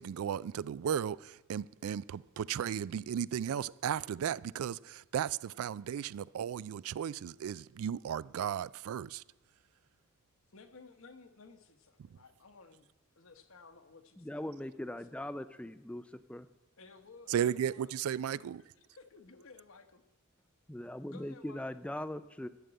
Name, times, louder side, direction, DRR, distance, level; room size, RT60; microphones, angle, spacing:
voice 1, 0.0-9.2 17.3-18.6, right 9 dB, 80° right, 0.3 m, -35 dB
voice 2, 10.5-12.9 13.2-15.1 16.8-17.9 18.3-18.4 18.9-20.0 21.1-21.6, left 4 dB, 70° left, 1.2 m, -56 dB
voice 3, 14.2-16.0 16.3-16.5 20.7-22.5, left 1 dB, 5° left, 0.3 m, -40 dB
12.5 x 6.8 x 9.0 m
head